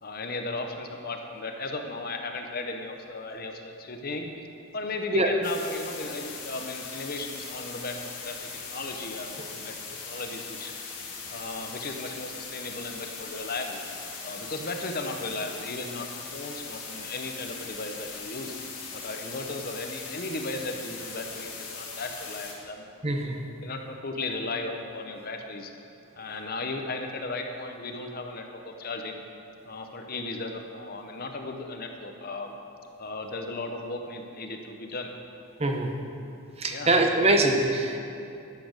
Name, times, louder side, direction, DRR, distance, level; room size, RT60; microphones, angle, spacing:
voice 1, 0.0-4.3 4.7-8.0 8.2-9.7 10.0-10.7 11.3-13.8 14.2-18.5 18.9-23.0 23.6-25.7 26.1-29.2 29.7-32.5 33.0-35.1 36.7-36.9, left 2 dB, 40° left, 4 dB, 0.9 m, -36 dB
sound 1, 5.4-22.5, left 5 dB, 80° left, 2.6 m, -40 dB
voice 2, 23.0-23.5 35.6-36.0 36.6-38.0, right 2 dB, 25° right, 3 dB, 0.9 m, -23 dB
11.5 x 8.6 x 6.5 m, 2.6 s
head